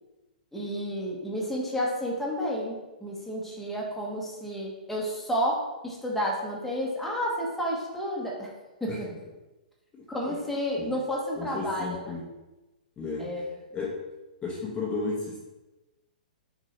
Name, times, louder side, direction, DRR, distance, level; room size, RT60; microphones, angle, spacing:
voice 1, 0.5-8.5 8.8-9.1 10.1-12.0 13.2-13.4, equal, 5° left, -4 dB, 1.5 m, -31 dB
voice 2, 9.9-10.4 10.8-10.9 11.4-12.3 13.0-13.4 13.7-14.0 14.4-15.4, left 4 dB, 20° left, -5 dB, 1.2 m, -33 dB
6.4 x 3.7 x 4.4 m, 1.0 s
figure-of-eight pair, 120°, 5 cm